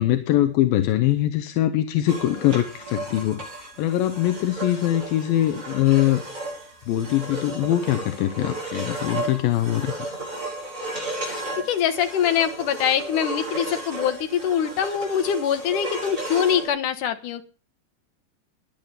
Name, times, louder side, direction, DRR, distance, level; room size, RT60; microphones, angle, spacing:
voice 1, 0.0-6.2 6.9-9.9, left 13 dB, 85° left, 8 dB, 2.8 m, -22 dB
sound 1, 2.1-16.7, right 2 dB, 25° right, 8.0 m, -34 dB
voice 2, 11.2-17.4, left 9 dB, 70° left, 9 dB, 2.7 m, -24 dB
15.5 x 11.0 x 5.7 m, 0.39 s
omnidirectional pair, 4.0 m